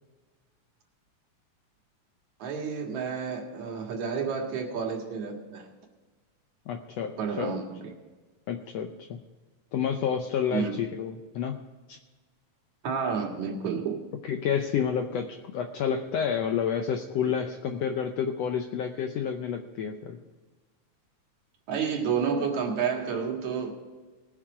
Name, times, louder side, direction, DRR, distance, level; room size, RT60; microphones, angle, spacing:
voice 1, 2.4-5.7 7.2-7.9 10.5-10.7 12.8-14.0 21.7-23.7, right 6 dB, 65° right, 1 dB, 3.0 m, -30 dB
voice 2, 6.7-7.5 8.5-9.2 9.7-11.6 11.9-12.0 14.2-20.2, left 7 dB, 75° left, 5 dB, 1.5 m, -29 dB
20.0 x 7.5 x 4.9 m, 1.3 s
omnidirectional pair, 3.7 m